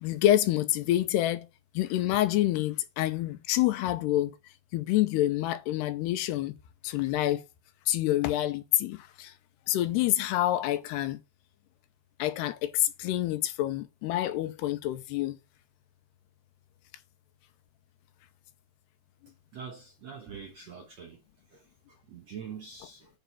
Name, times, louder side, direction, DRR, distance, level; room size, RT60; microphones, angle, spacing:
voice 1, 0.0-1.5 1.7-4.4 4.7-6.5 6.8-7.4 7.9-9.3 9.7-11.2 12.2-15.4, left 14 dB, 85° left, 2.9 m, -27 dB
voice 2, 19.5-21.2 22.1-23.0, right 6 dB, 70° right, 1.6 m, -43 dB
9.2 x 5.0 x 5.7 m
omnidirectional pair, 4.8 m